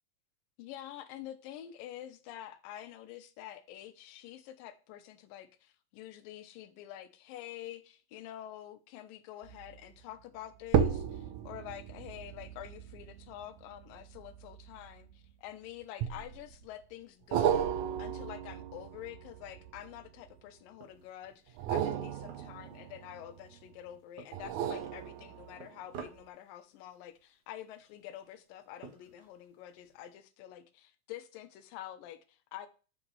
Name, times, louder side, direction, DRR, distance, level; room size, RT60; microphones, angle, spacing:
voice 1, 0.6-17.7 18.0-32.7, left 12 dB, 90° left, 2.5 m, -47 dB
sound 1, 9.4-9.8 10.6-15.3 16.0-16.6 17.3-20.3 21.5-23.6 24.3-25.7 26.2-26.3, right 9 dB, 70° right, 1.9 m, -34 dB
sound 2, 20.8-30.2, right 6 dB, 55° right, 2.1 m, -55 dB
7.9 x 4.0 x 4.6 m
omnidirectional pair, 3.9 m